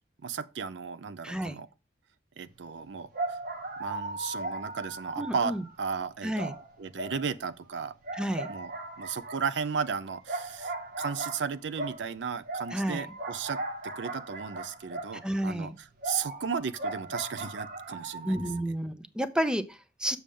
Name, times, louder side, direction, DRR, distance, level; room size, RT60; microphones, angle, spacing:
voice 1, 0.2-1.7 2.4-3.4 3.8-6.5 6.8-8.0 8.3-18.4, right 6 dB, 75° right, 0.5 m, -35 dB
voice 2, 1.2-1.6 5.2-5.6 6.2-6.5 8.1-8.5 12.7-13.0 15.2-15.7 18.2-20.2, equal, 5° right, 0.5 m, -31 dB
sound 1, 2.5-2.6 3.1-6.0 6.3-7.7 8.0-15.4 16.0-18.6, right 2 dB, 55° right, 1.3 m, -38 dB
6.8 x 6.3 x 3.6 m
head